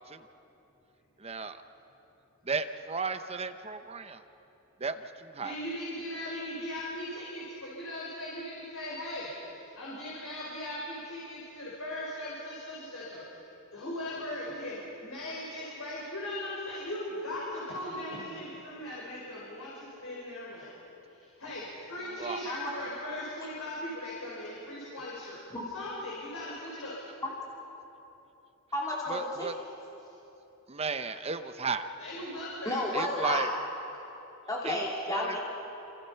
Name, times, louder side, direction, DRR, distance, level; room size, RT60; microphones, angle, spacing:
voice 1, 1.2-1.6 2.5-4.2 4.8-5.0 5.3-5.5 22.2-22.4 29.1-29.5 30.7-31.9 32.9-33.5 34.6-34.8 35.1-35.4, right 4 dB, 30° right, 9 dB, 0.9 m, -34 dB
voice 2, 5.4-9.3 9.8-13.4 13.7-25.4 25.7-27.0 32.0-32.9, left 1 dB, 85° left, -6 dB, 5.4 m, -39 dB
voice 3, 28.7-29.5 32.6-33.5 34.5-35.4, left 1 dB, 15° left, -4 dB, 3.2 m, -31 dB
27.5 x 27.5 x 5.8 m, 3.0 s
head